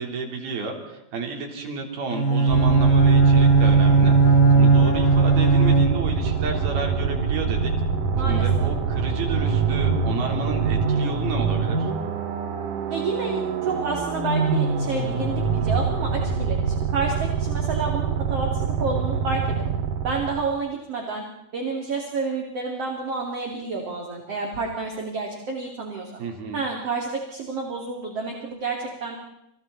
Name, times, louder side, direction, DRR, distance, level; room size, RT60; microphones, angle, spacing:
voice 1, 0.0-7.7 8.2-11.9 26.2-26.6, right 4 dB, 85° right, 2 dB, 5.8 m, -31 dB
Bowed string instrument, 2.1-6.3, right 4 dB, 20° left, 3.1 m, -17 dB
sound 1, 2.5-20.5, right 6 dB, 65° right, 3.0 m, -25 dB
voice 2, 8.2-8.7 12.9-19.6 20.0-21.3 21.5-26.1 26.5-29.2, right 4 dB, 45° right, 0 dB, 3.5 m, -29 dB
29.5 x 29.0 x 4.2 m, 0.86 s
omnidirectional pair, 4.3 m